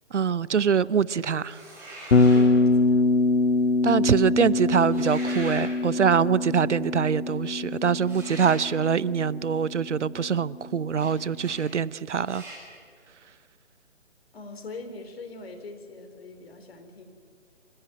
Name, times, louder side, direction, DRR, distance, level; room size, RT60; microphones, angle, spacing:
voice 1, 0.1-1.6 3.8-12.4, right 7 dB, 75° right, 0.7 m, -24 dB
sound 1, 1.4-2.5 4.8-5.7 8.0-8.6 10.9-11.1 11.4-11.6 12.2-12.6, right 2 dB, 5° right, 7.7 m, -41 dB
Bass guitar, 2.1-10.2, left 3 dB, 80° left, 1.0 m, -24 dB
voice 2, 2.3-3.1 14.3-17.0, left 3 dB, 55° left, 3.6 m, -41 dB
27.0 x 15.5 x 9.4 m
figure-of-eight pair, 140°, 36 cm